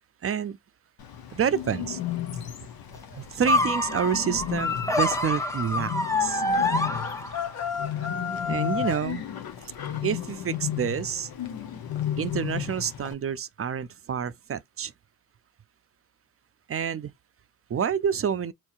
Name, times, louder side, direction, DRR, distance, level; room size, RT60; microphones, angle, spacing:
voice 1, 0.2-0.6 1.3-2.0 3.2-5.9 6.2-6.4 8.5-9.2 10.0-11.3 12.2-14.9 16.7-17.1 17.7-18.5, right 8 dB, 40° right, 0.4 m, -28 dB
Bird, 1.0-13.1, left 10 dB, 90° left, 0.7 m, -34 dB
sound 1, 3.4-7.6, left 2 dB, 10° left, 0.6 m, -26 dB
sound 2, 6.9-9.1, left 8 dB, 45° left, 0.7 m, -31 dB
4.4 x 2.8 x 2.3 m
cardioid pair, 60°, 36 cm